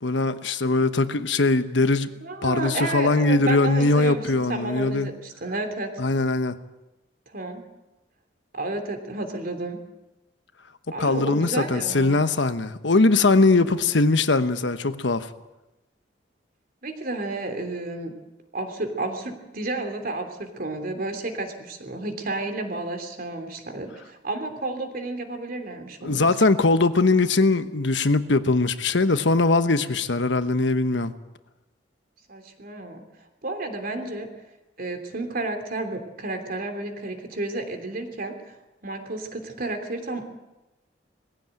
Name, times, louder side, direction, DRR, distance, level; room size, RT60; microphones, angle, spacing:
voice 1, 0.0-2.1 2.4-5.1 6.0-6.6 11.0-15.3 26.0-31.1, left 3 dB, 80° left, 11 dB, 1.1 m, -21 dB
voice 2, 2.2-5.9 7.3-7.6 8.5-9.8 10.9-12.2 16.8-18.1 18.5-26.3 32.3-33.0 33.4-34.3 34.8-38.5 38.8-40.3, right 2 dB, 55° right, 6 dB, 3.2 m, -31 dB
20.5 x 15.5 x 9.0 m, 1.0 s
head